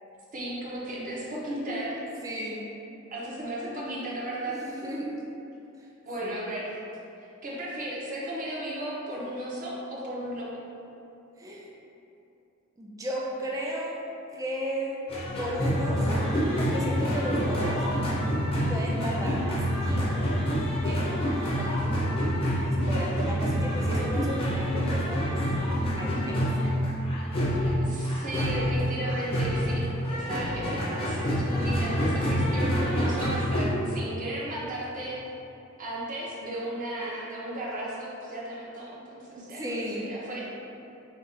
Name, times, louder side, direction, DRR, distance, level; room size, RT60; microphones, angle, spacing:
voice 1, 0.3-2.0 3.1-4.6 6.0-6.7 7.2-10.5 27.8-35.2 35.8-40.5, right 1 dB, 40° right, -6 dB, 0.8 m, -35 dB
voice 2, 1.4-2.7 4.5-5.1 5.8-5.9 6.2-6.4 11.4-11.7 12.8-14.0 14.3-15.0 15.4-16.3 16.6-17.9 18.7-20.3 20.9-21.1 21.5-22.0 22.6-25.4 26.0-26.5 32.3-32.4 39.3-40.1, equal, 15° right, -3 dB, 0.3 m, -35 dB
sound 1, 15.1-33.7, equal, 25° left, 0.6 m, -27 dB
3.5 x 2.3 x 4.1 m, 2.8 s
head